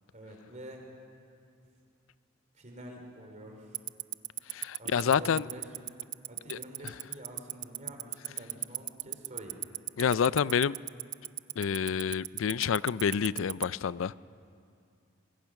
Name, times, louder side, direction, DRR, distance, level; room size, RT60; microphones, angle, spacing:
voice 1, 0.1-0.8 2.5-3.8 4.8-5.6 6.3-9.6, right 1 dB, 40° right, 3 dB, 3.2 m, -47 dB
Tick-tock, 3.7-13.6, right 18 dB, 60° right, 0.4 m, -33 dB
voice 2, 4.5-5.4 6.5-6.6 6.8-6.9 10.0-10.8 11.6-14.1, left 7 dB, 85° left, 19 dB, 0.4 m, -28 dB
24.5 x 21.0 x 5.9 m, 2.3 s
head